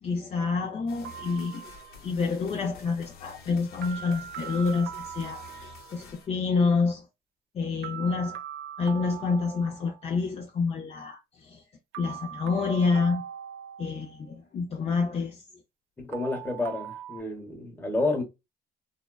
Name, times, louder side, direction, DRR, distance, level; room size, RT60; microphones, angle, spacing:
voice 1, 0.0-1.6 2.0-7.1 7.5-8.4 8.8-11.6 12.0-13.2 13.8-15.4, left 4 dB, 35° left, 0.5 m, -28 dB
sound 1, 0.9-6.3, left 5 dB, 65° left, 1.0 m, -49 dB
sound 2, 1.0-2.2 3.8-6.1 7.8-10.1 11.9-14.3 16.1-17.2, right 10 dB, 75° right, 0.4 m, -41 dB
voice 2, 16.0-18.2, left 2 dB, 10° left, 1.0 m, -30 dB
3.7 x 2.1 x 2.2 m
cardioid pair, 110°, 17 cm